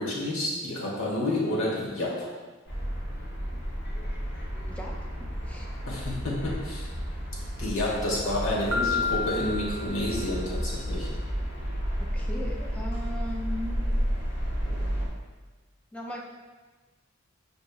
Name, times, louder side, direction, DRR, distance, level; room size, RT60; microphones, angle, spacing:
voice 1, 0.0-2.3 5.9-6.9 7.6-11.1, left 1 dB, 75° left, -4 dB, 1.1 m, -29 dB
sound 1, 2.7-15.1, equal, 55° left, 0.8 m, -32 dB
voice 2, 4.7-5.0 5.4-5.7 12.0-13.8 14.6-14.7 15.9-16.2, equal, 5° left, -2 dB, 0.3 m, -38 dB
Piano, 8.7-10.6, left 5 dB, 75° right, 0.4 m, -31 dB
5.1 x 2.8 x 2.3 m, 1.3 s
head